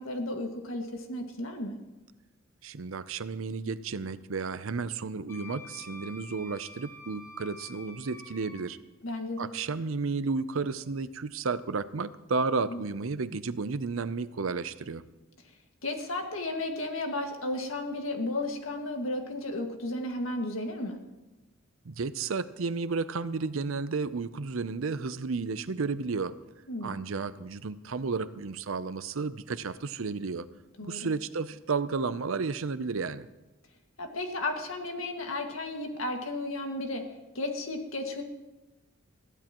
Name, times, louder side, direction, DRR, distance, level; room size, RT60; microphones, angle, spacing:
voice 1, 0.0-1.8 9.0-9.5 12.7-12.8 15.8-21.0 26.7-27.0 30.8-31.1 34.0-37.0 37.3-38.2, left 2 dB, 85° left, 3 dB, 2.0 m, -34 dB
voice 2, 2.6-8.8 9.4-15.0 21.8-26.3 26.8-30.5 30.8-33.3, right 4 dB, 80° right, 14 dB, 0.6 m, -32 dB
Wind instrument woodwind instrument, 5.3-8.7, left 2 dB, 10° left, 1.8 m, -48 dB
21.5 x 15.0 x 3.0 m, 1.1 s
head